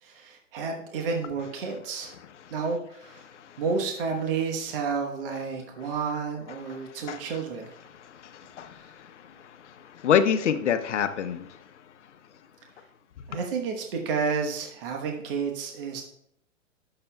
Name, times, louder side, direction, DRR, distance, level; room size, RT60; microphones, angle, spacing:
voice 1, 0.0-2.1 2.5-3.3 3.6-7.7 13.3-16.0, right 5 dB, 45° right, 2 dB, 1.2 m, -30 dB
voice 2, 3.2-3.6 6.7-6.8 7.1-7.2 7.9-11.5, left 8 dB, 65° left, 10 dB, 0.9 m, -28 dB
16.0 x 6.7 x 2.3 m, 0.74 s
hypercardioid pair, 145°, 38 cm